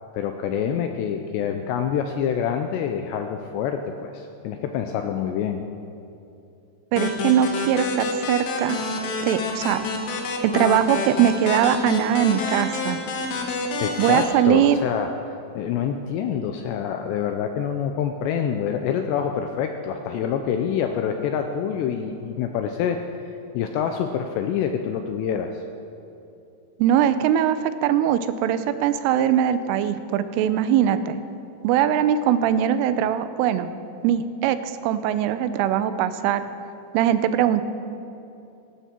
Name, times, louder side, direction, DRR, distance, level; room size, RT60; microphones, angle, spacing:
voice 1, 0.1-5.6 13.8-15.1 15.5-23.0 23.5-25.5, left 8 dB, 90° left, 5 dB, 2.5 m, -26 dB
voice 2, 6.9-8.8 9.2-9.8 10.4-13.0 14.0-14.8 26.8-31.2 31.6-33.7 34.0-36.5 36.9-37.6, right 10 dB, 85° right, 12 dB, 3.2 m, -21 dB
sound 1, 7.0-14.2, left 3 dB, 70° left, 3.4 m, -28 dB
19.0 x 13.5 x 4.4 m, 2.7 s
omnidirectional pair, 5.6 m